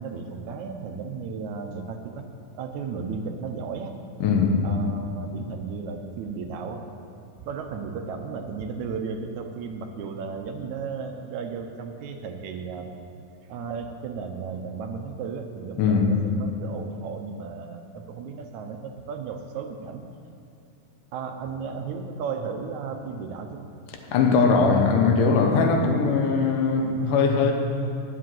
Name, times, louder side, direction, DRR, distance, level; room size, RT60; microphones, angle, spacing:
voice 1, 0.0-2.3 2.5-4.0 4.6-6.8 7.4-13.0 13.5-20.1 21.1-23.7, right 5 dB, 75° right, 5 dB, 2.0 m, -34 dB
voice 2, 4.2-4.7 15.8-16.2 24.1-27.5, left 4 dB, 90° left, 3 dB, 2.7 m, -20 dB
11.0 x 7.5 x 7.6 m, 2.5 s
omnidirectional pair, 3.6 m